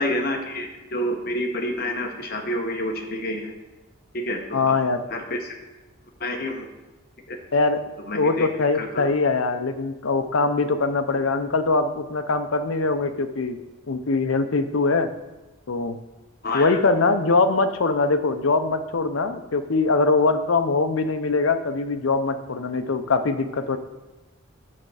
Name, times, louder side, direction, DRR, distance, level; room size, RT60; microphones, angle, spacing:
voice 1, 0.0-3.5 4.1-4.7 5.1-5.4 6.2-6.7 7.3-7.4 8.1-8.5 8.8-9.1 16.4-16.8, left 1 dB, 45° left, 3 dB, 1.0 m, -28 dB
voice 2, 4.5-5.0 7.5-7.8 8.1-13.6 13.9-15.1 15.7-16.0 16.5-23.8, left 3 dB, 70° left, 8 dB, 0.6 m, -22 dB
8.6 x 6.6 x 4.8 m, 1.1 s
head